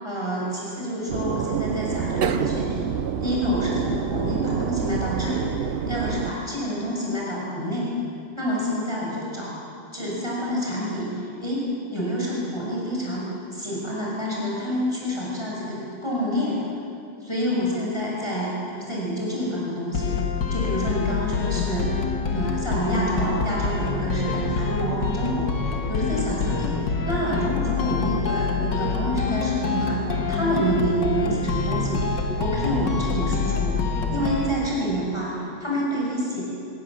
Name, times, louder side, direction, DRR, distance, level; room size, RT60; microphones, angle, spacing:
voice 1, 0.0-2.9 3.2-7.9 8.3-9.5 9.9-13.3 13.5-16.6 17.2-20.2 20.5-21.9 22.3-36.4, equal, 15° left, -5 dB, 6.3 m, -28 dB
sound 1, 1.1-6.3, right 7 dB, 80° right, 0.5 m, -27 dB
sound 2, 19.9-34.5, left 5 dB, 70° left, 2.1 m, -26 dB
26.5 x 18.5 x 7.6 m, 2.5 s
omnidirectional pair, 2.1 m